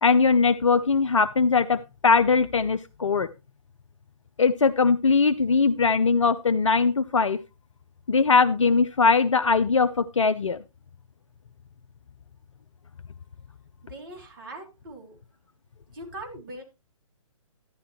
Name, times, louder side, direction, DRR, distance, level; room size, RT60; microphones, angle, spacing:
voice 1, 0.0-3.3 4.4-7.4 8.1-10.6, left 4 dB, 60° left, 12 dB, 0.6 m, -21 dB
voice 2, 13.9-15.2 15.9-16.6, right 1 dB, 40° right, 3 dB, 3.3 m, -41 dB
12.0 x 10.5 x 3.1 m, 0.27 s
figure-of-eight pair, 135°, 18 cm